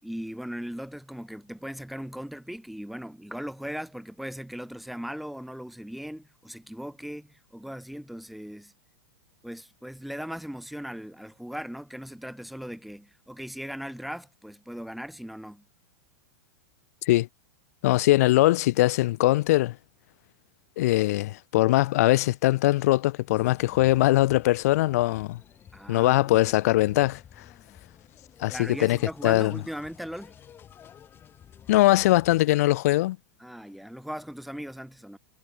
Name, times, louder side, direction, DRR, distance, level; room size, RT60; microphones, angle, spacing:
voice 1, 0.0-8.7 9.4-15.6 25.7-26.5 28.5-30.3 33.4-35.2, equal, ahead, 7.8 m, -38 dB
voice 2, 17.8-19.7 20.8-25.4 25.9-27.2 28.4-29.0 29.2-29.5 31.7-33.2, left 17 dB, 65° left, 1.1 m, -21 dB
sound 1, 23.3-32.4, left 9 dB, 25° left, 7.1 m, -51 dB
supercardioid pair, 140°, 9 cm